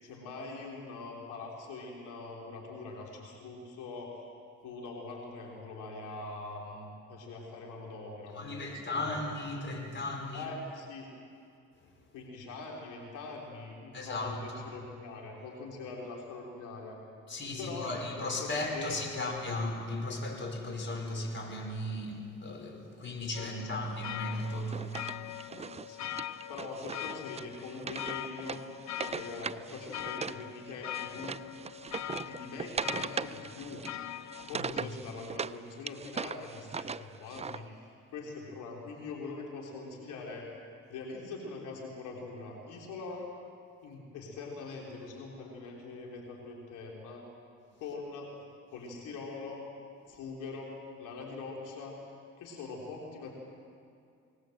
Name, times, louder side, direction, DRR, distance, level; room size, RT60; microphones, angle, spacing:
voice 1, 0.0-4.3 4.6-9.2 10.3-11.1 12.1-17.0 17.6-19.3 23.5-23.8 25.6-26.1 26.5-28.7 29.0-31.4 32.0-33.9 34.5-40.5 40.9-43.3 43.8-47.2 47.8-48.4 48.7-49.6 50.1-52.0 52.4-53.3, left 3 dB, 85° left, -1 dB, 3.4 m, -43 dB
voice 2, 8.3-10.5 13.9-14.6 17.3-25.0 34.5-34.9, left 2 dB, 40° left, 2 dB, 4.9 m, -36 dB
sound 1, 23.3-34.8, left 12 dB, 65° left, 0.8 m, -42 dB
Wood, 24.4-30.4 30.7-35.6 35.9-37.6, right 5 dB, 20° right, 0.5 m, -39 dB
22.0 x 19.0 x 7.8 m, 2.4 s
cardioid pair, 90°, 30 cm